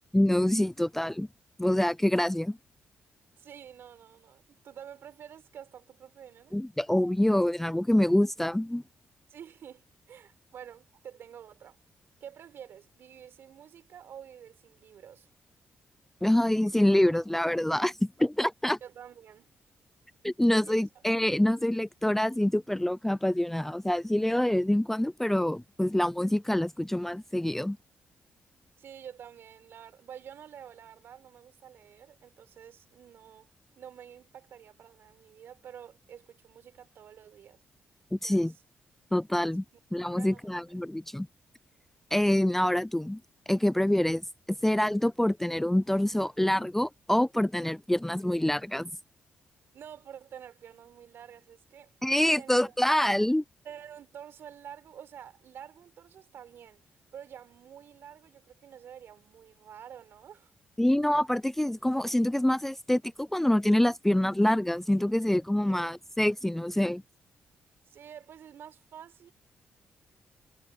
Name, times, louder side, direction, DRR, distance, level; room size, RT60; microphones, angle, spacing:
voice 1, 0.1-1.3 1.6-2.6 6.5-8.8 16.2-18.8 20.2-27.8 38.1-38.5 39.1-39.6 39.9-41.3 42.1-43.2 43.5-44.2 44.6-48.9 52.0-53.4 60.8-67.0, left 1 dB, 5° left, 0.3 m, -26 dB
voice 2, 3.4-6.6 9.3-11.8 12.2-15.3 18.8-19.5 20.7-21.0 28.8-33.5 33.8-37.6 38.2-38.5 40.2-40.8 49.7-51.9 52.4-52.8 53.6-56.8 57.1-60.5 65.7-65.9 67.9-69.3, right 9 dB, 75° right, 5.3 m, -49 dB
cardioid pair, 65°, 4 cm